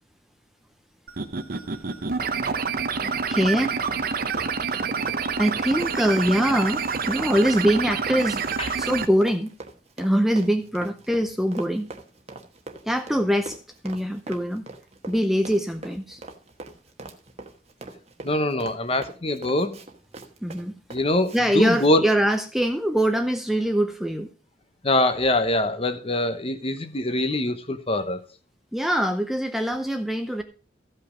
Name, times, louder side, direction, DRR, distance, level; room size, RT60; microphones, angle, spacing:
sound 1, 1.1-9.1, right 5 dB, 50° right, 0.8 m, -28 dB
voice 1, 3.3-3.8 5.4-8.4 8.8-9.5 10.0-11.9 12.9-13.6 13.8-14.6 15.1-16.2 20.4-20.7 21.3-24.3 28.7-30.4, equal, ahead, 6 dB, 0.6 m, -23 dB
Run, 4.1-21.4 21.7-21.9, right 2 dB, 35° right, 1.2 m, -42 dB
voice 2, 18.2-19.8 20.9-22.0 24.8-28.2, left 1 dB, 30° left, 9 dB, 1.0 m, -23 dB
14.5 x 5.6 x 5.1 m, 0.36 s
head